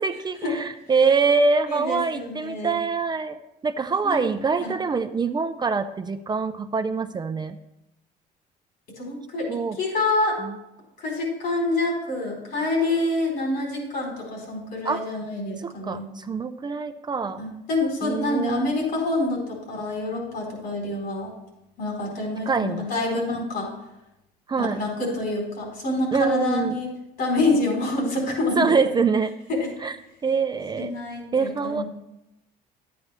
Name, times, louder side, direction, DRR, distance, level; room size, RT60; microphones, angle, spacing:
voice 1, 0.0-7.6 9.5-9.8 10.4-10.5 14.8-15.0 15.6-17.4 18.0-18.7 22.5-22.9 23.1-23.2 24.5-24.8 26.1-26.8 28.6-29.3 29.8-30.0 30.2-30.9 31.3-31.8, right 5 dB, 25° right, 9 dB, 0.5 m, -24 dB
voice 2, 1.7-2.8 4.0-4.2 4.6-4.7 9.0-10.4 11.0-16.0 17.4-21.3 21.8-23.7 24.6-26.9 27.2-28.8 29.5-29.7 30.8-31.8, left 2 dB, 70° left, -1 dB, 4.1 m, -27 dB
11.0 x 8.5 x 3.4 m, 0.87 s
cardioid pair, 110°, 17 cm